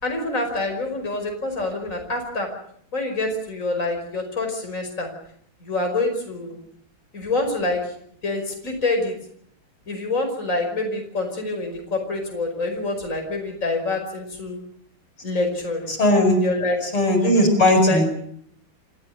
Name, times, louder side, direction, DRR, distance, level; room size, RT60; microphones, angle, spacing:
voice 1, 0.0-2.5 2.9-5.1 5.6-6.6 7.1-7.9 8.2-9.1 9.9-14.6 15.2-15.9 16.4-16.8 17.2-17.5 17.8-18.0, left 2 dB, 35° left, 3 dB, 5.8 m, -26 dB
voice 2, 15.9-16.4 16.8-18.1, left 1 dB, 85° left, 4 dB, 8.2 m, -18 dB
28.5 x 16.0 x 8.0 m, 0.67 s
omnidirectional pair, 2.3 m